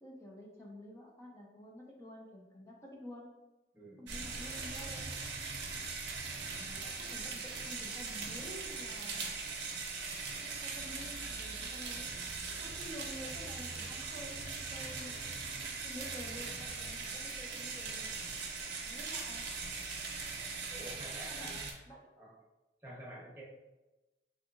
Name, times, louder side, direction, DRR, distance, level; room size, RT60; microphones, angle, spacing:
voice 1, 0.0-3.3 4.0-5.1 6.5-9.3 10.3-12.1 12.6-15.2 15.8-18.1 18.8-19.5 21.2-21.6 21.9-22.1, equal, 15° left, -2 dB, 0.6 m, -50 dB
voice 2, 3.7-4.2 15.0-15.2 20.7-21.7 22.2-22.3 22.8-23.4, right 1 dB, 10° right, -6 dB, 0.9 m, -49 dB
sound 1, 4.1-21.7, right 4 dB, 85° right, 0.6 m, -40 dB
3.6 x 2.7 x 2.5 m, 1.1 s
head